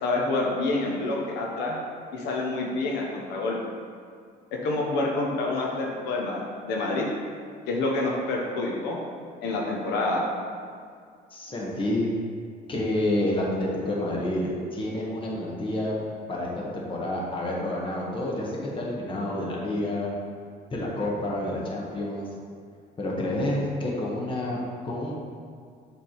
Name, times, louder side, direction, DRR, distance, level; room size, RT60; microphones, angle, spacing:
voice 1, 0.0-1.8 2.1-3.6 4.5-7.1 7.7-9.0 9.4-10.2, left 2 dB, 85° left, -1 dB, 0.9 m, -27 dB
voice 2, 11.3-12.1 12.7-15.9 16.3-20.1 20.7-22.3 23.0-25.1, left 1 dB, 30° left, -4 dB, 1.4 m, -29 dB
6.9 x 3.5 x 4.6 m, 2.2 s
cardioid pair, 110°, 17 cm